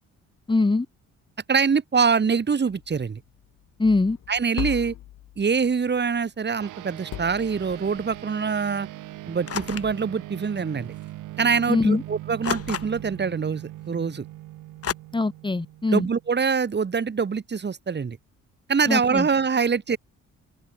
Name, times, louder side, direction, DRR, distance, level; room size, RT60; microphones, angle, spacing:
voice 1, 0.5-0.9 3.8-4.2 11.7-12.0 15.1-16.1 18.9-19.3, left 3 dB, 15° left, 1.4 m, -22 dB
voice 2, 1.5-3.2 4.3-4.9 5.4-8.9 9.3-10.9 11.4-14.2 15.9-18.2 18.7-20.0, right 5 dB, 35° right, 2.5 m, -24 dB
sound 1, 2.7-5.9 7.1-8.2, left 14 dB, 85° left, 5.0 m, -38 dB
sound 2, 6.6-16.3, right 16 dB, 90° right, 4.6 m, -40 dB
sound 3, 9.5-10.0 11.0-11.1 12.4-13.2 14.8-14.9, left 8 dB, 50° left, 4.6 m, -31 dB
open air
cardioid pair, 90°, 30 cm